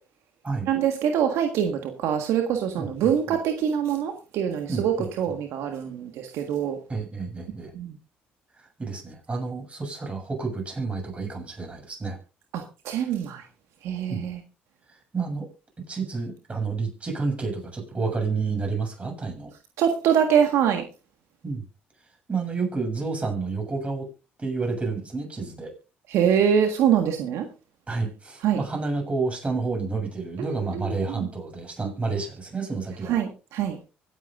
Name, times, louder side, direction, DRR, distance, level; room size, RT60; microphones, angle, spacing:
voice 1, 0.7-6.8 7.7-7.9 12.5-13.4 13.8-14.4 19.8-20.8 26.1-27.5 28.4-28.6 30.4-31.3 33.1-33.8, right 8 dB, 70° right, 5 dB, 1.6 m, -24 dB
voice 2, 2.8-3.4 4.7-5.1 6.9-7.7 8.8-12.2 14.1-14.2 14.9-15.5 15.9-19.5 21.4-21.6 22.3-24.1 24.4-25.7 27.9-33.2, right 4 dB, 25° right, 3 dB, 7.3 m, -30 dB
24.5 x 9.1 x 2.6 m, 0.31 s
supercardioid pair, 70°, 5 cm